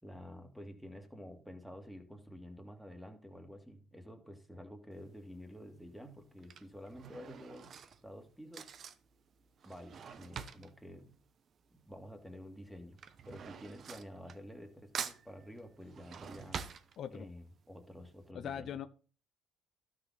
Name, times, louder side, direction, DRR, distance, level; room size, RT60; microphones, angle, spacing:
voice 1, 0.0-8.7 9.6-11.2 11.7-13.0 13.3-16.8 17.1-18.8, equal, ahead, 5 dB, 2.0 m, -50 dB
Drawer open or close / Cutlery silverware, 4.9-5.3 6.2-12.1 12.3-14.7 14.9-17.5 17.9-18.0 18.2-18.3, right 7 dB, 50° right, 0.9 m, -46 dB
voice 2, 18.3-18.9, left 9 dB, 60° left, 11 dB, 0.5 m, -40 dB
12.0 x 6.3 x 4.1 m, 0.40 s
supercardioid pair, 80°, 0 cm